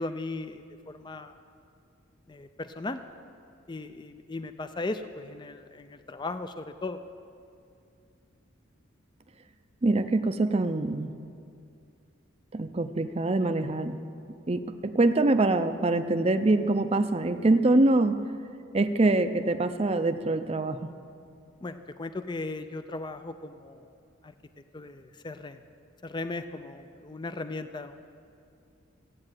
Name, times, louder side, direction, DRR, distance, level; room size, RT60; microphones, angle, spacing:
voice 1, 0.0-1.3 2.3-3.0 3.7-7.0 21.6-23.9 24.2-24.3 24.7-25.6 26.0-28.0, left 2 dB, 20° left, 10 dB, 0.4 m, -37 dB
voice 2, 9.8-11.1 12.5-14.0 14.5-18.2 18.7-20.9, right 2 dB, 30° right, 8 dB, 0.5 m, -24 dB
15.0 x 8.6 x 9.0 m, 2.5 s
head